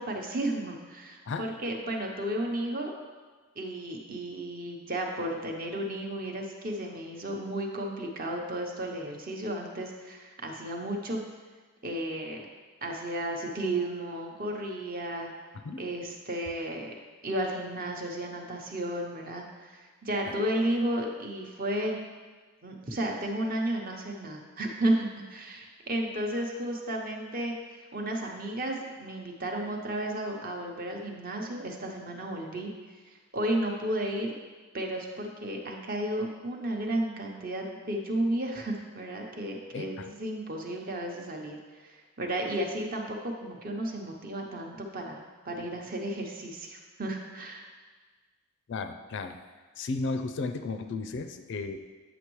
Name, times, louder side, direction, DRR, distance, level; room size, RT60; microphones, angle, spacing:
voice 1, 0.0-2.9 3.6-11.2 11.8-12.4 12.8-15.3 15.8-16.9 17.2-22.0 22.6-32.7 33.1-34.3 34.7-41.6 41.8-47.7, right 1 dB, 40° right, 1 dB, 0.8 m, -33 dB
voice 2, 39.7-40.1 48.7-49.4 49.8-51.8, left 3 dB, 55° left, 8 dB, 0.4 m, -34 dB
8.2 x 6.0 x 3.1 m, 1.4 s
head